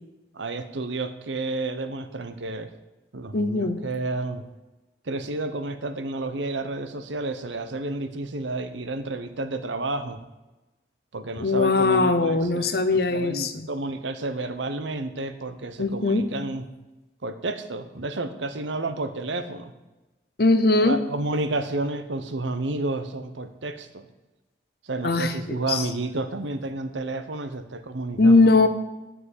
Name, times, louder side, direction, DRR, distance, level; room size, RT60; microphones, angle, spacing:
voice 1, 0.3-2.7 3.1-4.4 5.0-10.2 11.1-16.6 17.2-19.7 20.8-24.1 24.8-28.7, right 2 dB, 80° right, 10 dB, 0.9 m, -31 dB
voice 2, 3.3-3.8 11.4-13.7 15.8-16.3 20.4-21.0 25.0-25.9 28.2-28.7, left 3 dB, 55° left, 10 dB, 0.8 m, -20 dB
9.7 x 6.0 x 8.0 m, 1.1 s
head